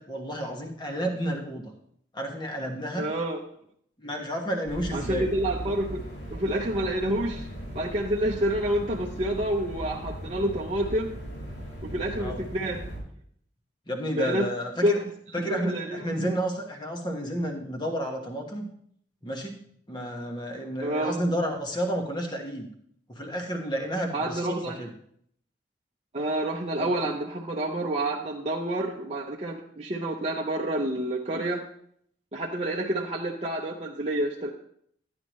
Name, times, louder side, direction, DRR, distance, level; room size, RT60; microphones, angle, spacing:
voice 1, 0.0-1.7 2.1-3.1 4.0-5.3 12.2-12.4 13.9-15.0 15.3-18.7 19.2-19.6 19.9-22.7 23.1-24.9 26.8-26.9, equal, 25° left, 2 dB, 1.3 m, -31 dB
voice 2, 3.0-3.4 4.9-6.0 6.3-7.5 7.7-11.2 11.8-12.8 14.2-14.5 14.8-15.0 15.4-16.4 20.8-21.2 24.1-24.8 26.1-31.6 32.3-34.5, right 1 dB, 35° right, -2 dB, 0.7 m, -28 dB
sound 1, 4.7-13.0, right 1 dB, 75° left, 5.1 m, -38 dB
11.5 x 9.6 x 3.1 m, 0.66 s
head